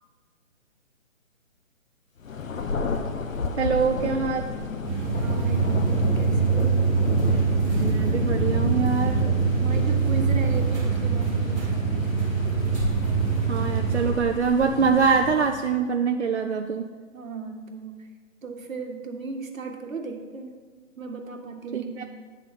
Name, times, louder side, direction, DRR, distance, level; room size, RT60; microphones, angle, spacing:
Thunder, 2.2-15.9, left 4 dB, 75° left, 0.9 m, -31 dB
voice 1, 3.6-4.4 7.8-9.3 13.5-16.9 21.7-22.0, right 5 dB, 55° right, 4 dB, 0.5 m, -24 dB
sound 1, 4.8-14.1, right 5 dB, 5° left, 1.2 m, -24 dB
voice 2, 5.2-6.9 9.1-12.3 17.1-18.1 18.4-20.6 21.0-22.0, right 3 dB, 75° right, 3 dB, 1.5 m, -36 dB
10.0 x 3.9 x 7.3 m, 1.5 s
hypercardioid pair, 175°, 40 cm